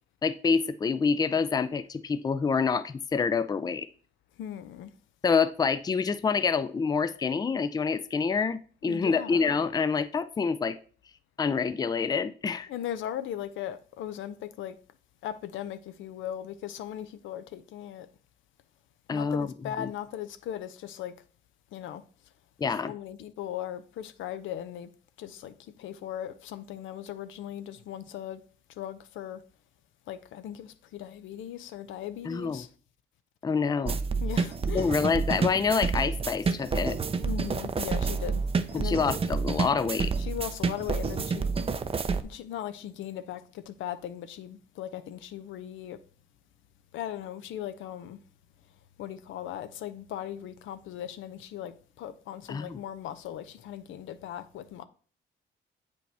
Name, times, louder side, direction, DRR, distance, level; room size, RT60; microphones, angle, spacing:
voice 1, 0.2-3.9 5.2-10.8 11.4-12.7 19.1-19.9 22.6-22.9 32.2-32.6 33.4-34.0 34.7-37.0 38.7-40.1 52.5-52.8, left 5 dB, 20° left, 0.4 m, -27 dB
voice 2, 4.4-4.9 8.8-9.5 12.7-14.8 15.2-18.1 19.1-21.1 21.7-22.0 22.8-24.9 25.2-28.4 28.8-29.4 30.1-32.7 34.2-34.9 37.2-38.4 38.7-39.1 40.2-41.6 42.2-46.0 46.9-48.2 49.0-54.8, left 11 dB, 80° left, 0.6 m, -38 dB
sound 1, 33.9-42.2, right 5 dB, 30° right, 0.5 m, -29 dB
7.8 x 5.2 x 3.4 m
cardioid pair, 90°, 20 cm